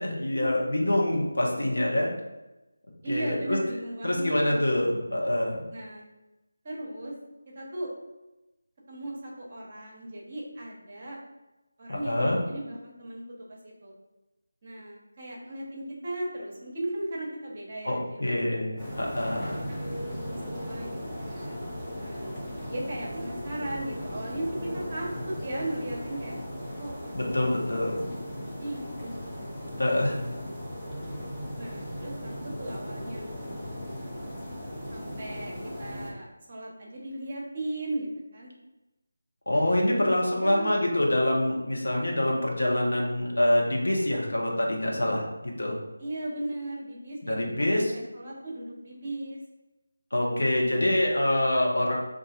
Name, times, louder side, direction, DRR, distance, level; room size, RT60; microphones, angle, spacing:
voice 1, 0.0-2.1 3.1-3.6 4.0-5.6 11.9-12.4 17.8-19.7 27.1-28.0 29.8-30.2 39.5-45.8 47.2-47.9 50.1-51.9, left 1 dB, 70° left, -2 dB, 0.9 m, -26 dB
voice 2, 3.0-4.5 5.7-6.1 6.6-7.1 7.5-7.9 8.9-11.2 11.8-13.2 13.5-13.9 14.6-18.3 20.1-21.0 21.2-21.7 21.9-26.3 26.8-28.0 28.4-29.2 31.6-33.3 34.9-35.5 35.8-38.5 39.9-40.7 46.0-47.4 47.7-49.4, right 1 dB, 35° right, -3 dB, 0.8 m, -37 dB
sound 1, 18.8-36.1, equal, 5° left, 0.6 m, -37 dB
4.2 x 2.5 x 2.4 m, 1.0 s
figure-of-eight pair, 160°, 0 cm